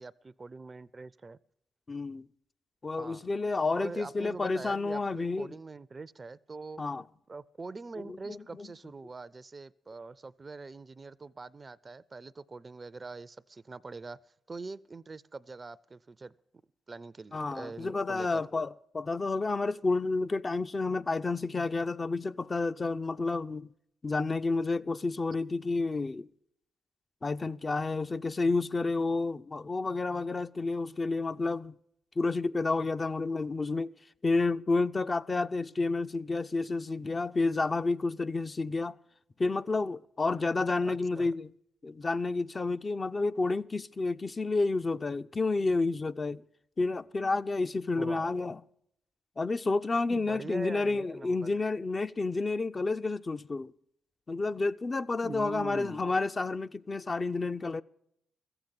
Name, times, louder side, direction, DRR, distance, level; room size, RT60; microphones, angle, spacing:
voice 1, 0.0-1.4 3.0-3.3 3.7-6.8 7.3-16.3 16.9-18.4 40.8-41.3 47.9-48.4 50.1-51.5 55.2-56.1, right 3 dB, 35° right, 0.4 m, -43 dB
voice 2, 1.9-2.3 2.8-5.5 6.8-7.0 8.3-8.7 17.3-23.7 24.0-26.3 27.2-31.8 32.2-33.9 34.2-39.0 39.4-41.5 41.8-46.4 46.8-48.6 49.4-53.7 54.3-57.8, left 3 dB, 35° left, 0.4 m, -30 dB
14.5 x 7.9 x 8.7 m
hypercardioid pair, 45°, 0 cm